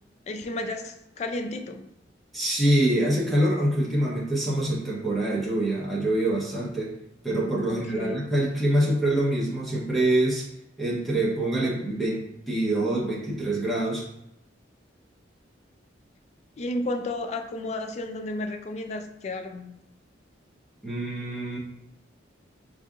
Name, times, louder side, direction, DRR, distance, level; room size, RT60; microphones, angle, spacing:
voice 1, 0.3-1.9 7.7-8.2 16.6-19.7, left 2 dB, 35° left, 6 dB, 0.3 m, -32 dB
voice 2, 2.3-6.9 7.2-10.4 10.8-14.1 20.8-21.6, right 1 dB, ahead, -6 dB, 0.8 m, -25 dB
4.8 x 2.7 x 2.4 m, 0.79 s
head